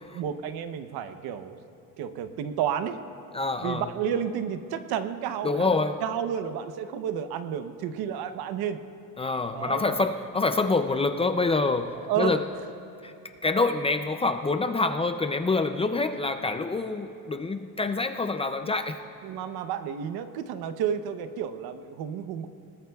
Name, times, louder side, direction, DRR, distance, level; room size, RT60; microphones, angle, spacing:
voice 1, 0.1-1.6 2.0-3.0 3.6-8.8 9.5-9.8 12.0-12.4 19.2-22.5, right 8 dB, 75° right, 10 dB, 0.9 m, -31 dB
voice 2, 3.3-3.9 5.4-6.0 9.2-12.4 13.0-13.1 13.4-19.0, left 3 dB, 15° left, 8 dB, 0.4 m, -26 dB
28.5 x 19.0 x 2.3 m, 2.7 s
cardioid pair, 145°, 37 cm